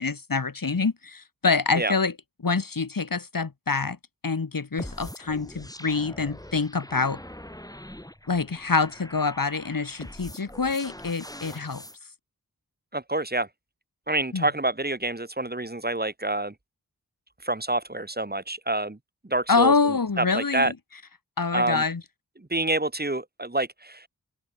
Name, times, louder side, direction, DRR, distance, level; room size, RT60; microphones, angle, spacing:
voice 1, 0.0-2.1 2.4-4.0 4.2-7.2 8.3-11.8 14.3-14.5 19.5-20.7 21.4-22.0, left 4 dB, 65° left, 1.8 m, -26 dB
sound 1, 4.8-12.0, left 1 dB, 10° left, 2.8 m, -43 dB
voice 2, 12.9-13.5 14.1-16.5 17.4-19.0 19.2-20.7 21.5-21.8 22.4-24.1, right 2 dB, 25° right, 2.0 m, -27 dB
wide cardioid pair, 40°, 35 cm